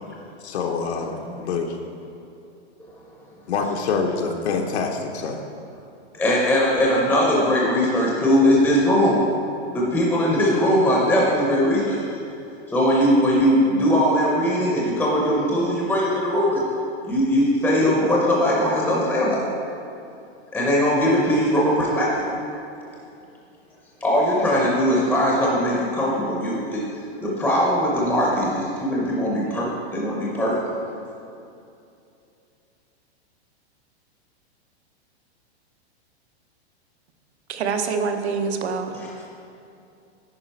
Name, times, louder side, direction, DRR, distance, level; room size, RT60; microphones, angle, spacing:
voice 1, 0.4-1.8 3.5-5.4, left 5 dB, 75° left, 2 dB, 0.9 m, -26 dB
voice 2, 6.1-9.2 9.7-12.2 12.7-16.6 17.1-19.4 20.5-22.2 24.0-26.9 27.2-30.5 38.9-39.1, equal, 5° left, -4 dB, 0.6 m, -20 dB
voice 3, 37.5-39.0, right 5 dB, 75° right, 6 dB, 0.9 m, -25 dB
9.9 x 4.9 x 4.4 m, 2.6 s
supercardioid pair, 160°, 33 cm